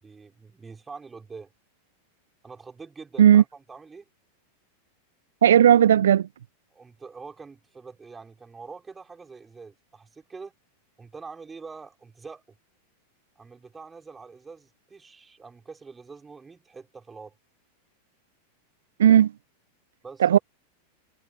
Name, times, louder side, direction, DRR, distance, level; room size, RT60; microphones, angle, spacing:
voice 1, 0.0-1.5 2.4-4.1 6.7-10.5 11.0-12.4 13.4-17.4 20.0-20.4, right 4 dB, 15° right, 5.3 m, -44 dB
voice 2, 5.4-6.3 19.0-19.3 20.2-20.4, right 10 dB, 65° right, 0.4 m, -15 dB
figure-of-eight pair, 90°, 0 cm